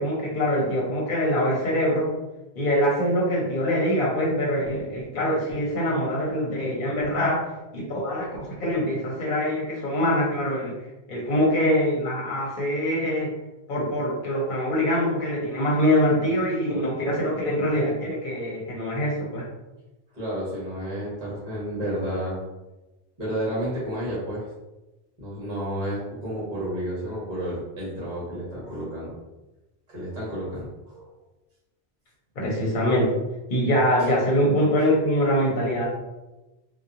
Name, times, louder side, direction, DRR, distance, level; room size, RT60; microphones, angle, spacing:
voice 1, 0.0-2.1 2.6-7.4 7.7-10.7 11.1-13.3 13.7-19.4 32.4-33.1 33.5-35.9, equal, 55° left, -4 dB, 0.9 m, -24 dB
voice 2, 20.1-22.4 23.2-24.5 25.2-29.2 29.9-31.1 34.0-34.1 34.8-34.9, equal, 45° right, -7 dB, 1.2 m, -31 dB
2.8 x 2.2 x 2.4 m, 1.0 s
omnidirectional pair, 1.1 m